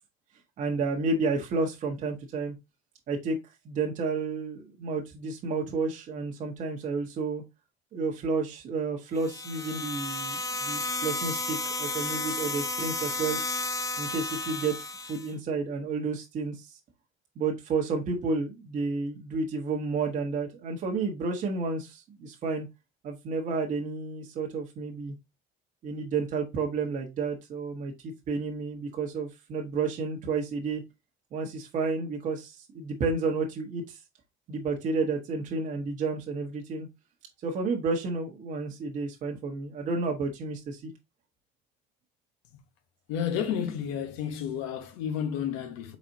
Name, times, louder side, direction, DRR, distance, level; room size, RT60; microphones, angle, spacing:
voice 1, 0.6-2.5 3.1-3.4 3.6-7.4 7.9-13.4 14.0-16.8 17.4-22.7 23.0-25.1 25.8-30.8 31.3-34.0 34.5-36.9 37.4-40.9, right 4 dB, 45° right, 1.1 m, -31 dB
sound 1, 9.2-15.3, left 2 dB, 20° left, 0.6 m, -32 dB
voice 2, 43.1-46.0, left 8 dB, 90° left, 1.1 m, -31 dB
4.2 x 4.0 x 2.7 m
cardioid pair, 120°, 18 cm